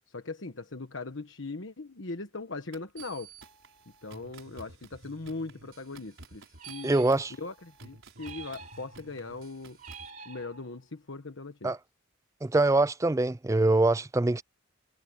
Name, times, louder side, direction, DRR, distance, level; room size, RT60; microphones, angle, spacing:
voice 1, 0.1-3.3 4.0-6.9 7.4-9.8 10.2-11.7, left 3 dB, 75° left, 1.3 m, -40 dB
sound 1, 2.7-10.1, right 4 dB, 80° right, 4.9 m, -51 dB
sound 2, 6.6-7.6 8.2-9.2 9.8-11.0, right 5 dB, 40° right, 3.8 m, -48 dB
voice 2, 6.8-7.3 11.6-11.8 12.4-14.4, right 2 dB, 15° right, 0.4 m, -24 dB
head